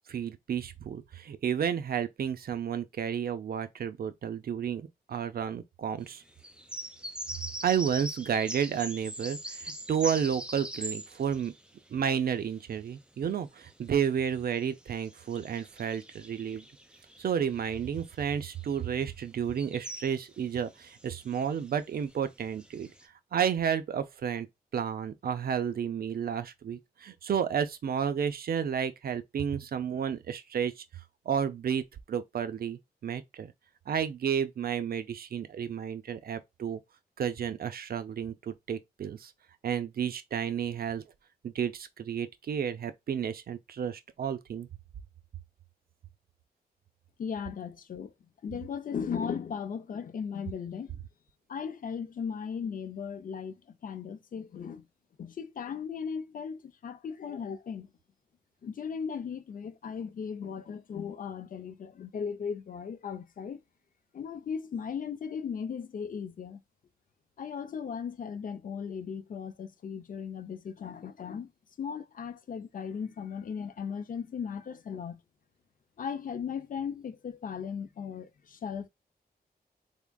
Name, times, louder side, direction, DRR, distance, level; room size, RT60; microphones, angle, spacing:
voice 1, 0.1-6.2 7.6-11.5 11.9-16.6 17.2-22.9 23.3-24.5 24.7-30.8 31.3-33.5 33.9-36.8 37.2-39.3 39.6-41.0 41.4-44.7, right 8 dB, 65° right, 0.5 m, -31 dB
sound 1, 6.3-12.8 13.2-23.0, right 1 dB, 5° right, 0.4 m, -43 dB
voice 2, 47.2-48.1 48.4-50.9 51.5-54.9 55.2-57.9 58.6-63.6 64.1-66.6 67.4-71.5 71.8-75.2 76.0-78.9, left 6 dB, 55° left, 0.5 m, -37 dB
3.6 x 3.5 x 2.2 m
wide cardioid pair, 155°, 17 cm